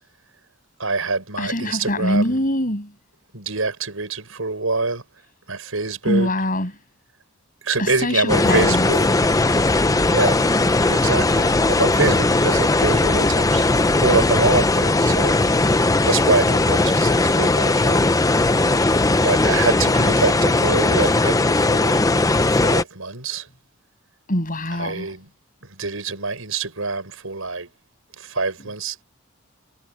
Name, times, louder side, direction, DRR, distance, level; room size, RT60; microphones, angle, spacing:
voice 1, 0.8-2.4 3.3-5.0 5.5-6.3 7.6-9.1 10.1-10.4 10.9-13.6 14.0-15.4 16.0-18.1 19.2-22.0 22.5-23.5 24.8-25.3 25.7-27.7 28.2-29.0, right 3 dB, 75° right, 6.2 m, -25 dB
voice 2, 1.4-2.9 6.0-6.7 7.8-8.9 24.3-25.1, left 1 dB, 40° left, 7.5 m, -23 dB
sound 1, 8.3-22.8, left 2 dB, 15° left, 0.6 m, -18 dB
head